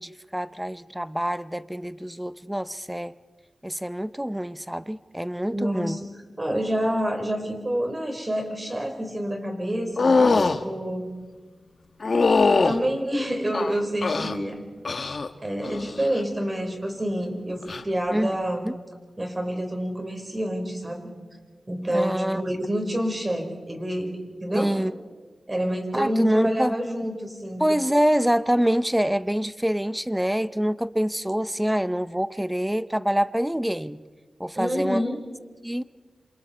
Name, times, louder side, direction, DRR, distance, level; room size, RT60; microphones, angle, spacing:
voice 1, 0.0-3.1 3.6-6.0 18.1-18.4 18.6-18.7 21.9-22.4 24.5-24.9 25.9-26.8 27.6-34.0 34.4-35.0 35.6-35.8, equal, 5° right, 15 dB, 0.7 m, -25 dB
voice 2, 5.5-6.1 6.4-11.2 12.4-14.6 15.4-18.6 19.2-21.1 21.7-24.7 25.5-27.7 34.5-35.3, equal, 25° right, 3 dB, 4.7 m, -28 dB
sound 1, 10.0-10.6 12.0-12.8 13.5-14.4 14.9-15.3 15.6-16.1 17.6-17.8, left 3 dB, 60° left, 1.2 m, -21 dB
27.5 x 27.0 x 4.5 m, 1.4 s
cardioid pair, 65°, 0 cm